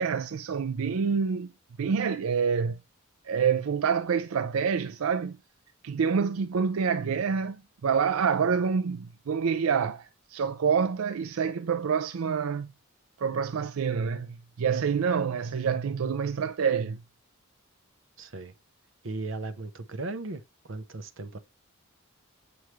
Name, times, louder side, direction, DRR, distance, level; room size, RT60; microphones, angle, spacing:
voice 1, 0.0-1.5 1.8-2.8 3.2-5.4 5.8-12.7 13.2-17.0, right 6 dB, 85° right, 0.4 m, -27 dB
voice 2, 18.2-18.5 19.0-20.4 20.7-21.4, right 2 dB, 60° right, 0.8 m, -36 dB
7.9 x 4.8 x 3.1 m
head